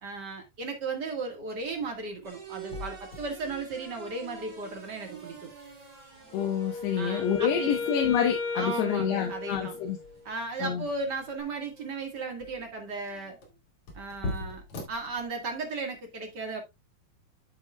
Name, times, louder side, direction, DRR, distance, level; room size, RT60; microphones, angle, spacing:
voice 1, 0.0-5.5 7.0-7.9 8.5-9.8 10.2-13.4 13.9-16.6, right 3 dB, 45° right, 1.3 m, -36 dB
sound 1, 1.6-15.7, left 2 dB, 45° left, 2.7 m, -45 dB
sound 2, 2.2-11.4, right 6 dB, 30° right, 2.4 m, -49 dB
voice 2, 6.3-10.0 10.6-10.8, left 8 dB, 90° left, 3.2 m, -28 dB
Wind instrument woodwind instrument, 6.3-10.2, left 4 dB, 65° left, 2.8 m, -35 dB
9.4 x 8.0 x 2.3 m
omnidirectional pair, 4.6 m